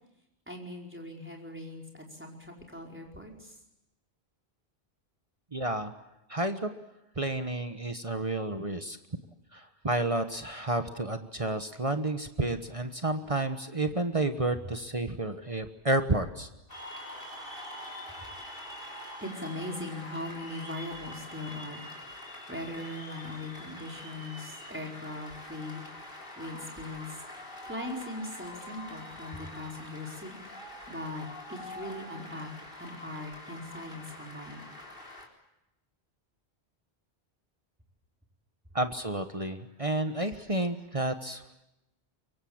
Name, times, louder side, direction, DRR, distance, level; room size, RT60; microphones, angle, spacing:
voice 1, 0.5-3.6 19.2-21.8 22.5-25.8 26.4-27.2 27.6-32.5 32.8-34.6, left 1 dB, 10° right, 0 dB, 4.8 m, -40 dB
voice 2, 5.5-5.9 6.3-6.7 7.2-9.0 9.5-16.5 38.7-41.6, right 2 dB, 30° right, 8 dB, 1.3 m, -31 dB
Cheering / Applause, 16.7-35.3, left 1 dB, 55° left, 4.2 m, -45 dB
24.0 x 23.5 x 8.8 m, 0.89 s
omnidirectional pair, 1.1 m